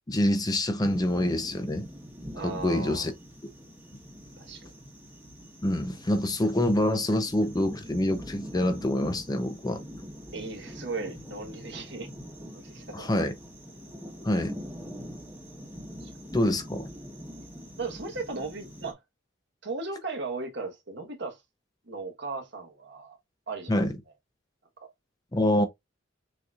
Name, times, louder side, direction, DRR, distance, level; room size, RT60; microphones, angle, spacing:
voice 1, 0.1-1.9 2.4-3.1 3.4-3.5 5.6-9.8 12.9-13.4 14.2-14.5 16.3-16.9 23.7-23.9 25.3-25.7, left 1 dB, 20° left, 0.6 m, -26 dB
sound 1, 0.8-18.9, equal, 10° right, 1.3 m, -44 dB
voice 2, 2.3-3.1 4.4-4.7 10.3-12.1 12.5-13.1 16.0-16.1 17.8-19.0 19.6-21.4 21.9-23.2 23.5-23.7 24.8-24.9, right 3 dB, 65° right, 1.3 m, -36 dB
6.4 x 2.9 x 2.4 m
head